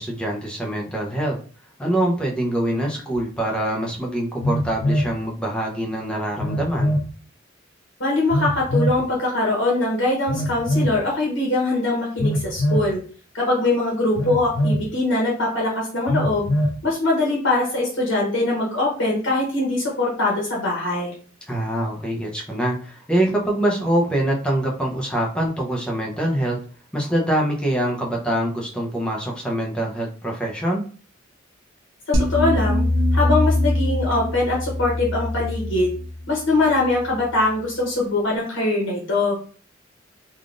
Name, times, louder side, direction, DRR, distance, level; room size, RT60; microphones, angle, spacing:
voice 1, 0.0-1.4 1.8-7.0 21.5-26.6 26.9-30.8, right 1 dB, 5° left, -2 dB, 0.6 m, -24 dB
Telephone, 3.1-3.2 4.4-5.1 6.4-7.1 8.3-9.0 10.3-11.0 12.2-12.9 14.2-14.9 16.1-16.8, equal, 90° left, 0.5 m, -22 dB
voice 2, 8.0-13.0 13.3-16.5 16.8-21.1 32.2-32.9 33.1-36.0 36.3-39.4, left 2 dB, 70° left, -3 dB, 1.0 m, -22 dB
sound 1, 32.1-37.4, left 1 dB, 70° right, 0.7 m, -23 dB
3.4 x 2.4 x 2.5 m, 0.41 s
head